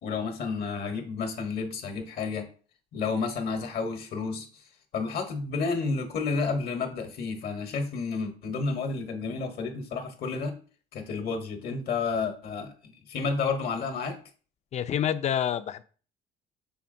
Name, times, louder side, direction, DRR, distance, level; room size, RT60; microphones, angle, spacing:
voice 1, 0.0-2.5 2.9-4.6 4.9-10.6 10.9-14.2, left 4 dB, 65° left, 5 dB, 1.1 m, -31 dB
voice 2, 14.7-15.8, left 9 dB, 40° left, 12 dB, 0.4 m, -27 dB
5.7 x 3.4 x 2.6 m, 0.40 s
cardioid pair, 110°, 17 cm